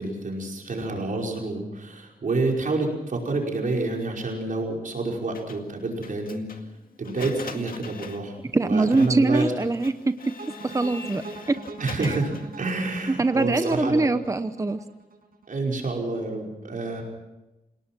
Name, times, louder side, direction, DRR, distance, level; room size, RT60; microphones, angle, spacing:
voice 1, 0.0-6.4 7.0-9.5 11.8-14.1 15.5-17.0, right 3 dB, 65° right, 0 dB, 5.3 m, -28 dB
Printer, 5.3-12.6, left 5 dB, 75° left, 2.1 m, -43 dB
voice 2, 8.5-9.9 10.6-11.2 12.0-12.1 13.2-14.8, right 3 dB, 20° right, 11 dB, 0.8 m, -23 dB
sound 1, 10.4-15.5, right 3 dB, 85° right, 5.5 m, -41 dB
27.5 x 18.5 x 6.1 m, 0.99 s
wide cardioid pair, 110°, 15 cm